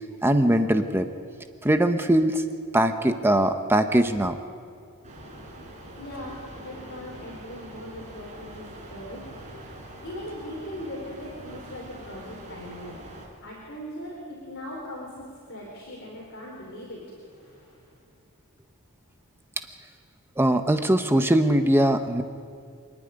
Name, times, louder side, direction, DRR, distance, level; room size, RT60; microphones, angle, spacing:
voice 1, 0.2-1.1 1.6-2.4 2.7-4.4 20.4-22.2, right 1 dB, 10° right, 7 dB, 0.8 m, -21 dB
sound 1, 5.0-13.3, right 1 dB, 35° right, 4.7 m, -44 dB
voice 2, 6.0-13.0 13.4-18.0, left 1 dB, 60° left, -3 dB, 4.0 m, -40 dB
26.5 x 9.9 x 9.9 m, 2.3 s
head